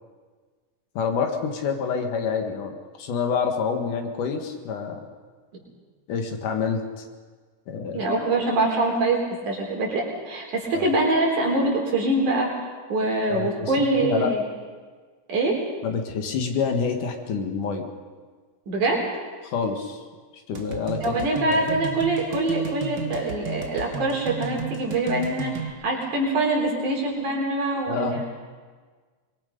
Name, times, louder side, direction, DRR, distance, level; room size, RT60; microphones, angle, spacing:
voice 1, 0.9-5.0 6.1-7.0 7.7-8.1 10.7-10.9 13.3-13.7 14.0-14.3 15.8-17.9 19.4-20.1 20.5-21.8 27.9-28.2, left 6 dB, 85° left, 4 dB, 3.3 m, -27 dB
voice 2, 7.9-9.2 9.5-12.5 12.9-14.4 15.3-15.6 18.7-19.0 21.0-28.2, right 2 dB, 75° right, -1 dB, 5.5 m, -24 dB
sound 1, 20.5-25.7, right 6 dB, 45° right, 1.6 m, -34 dB
24.5 x 23.0 x 5.4 m, 1.5 s
omnidirectional pair, 3.5 m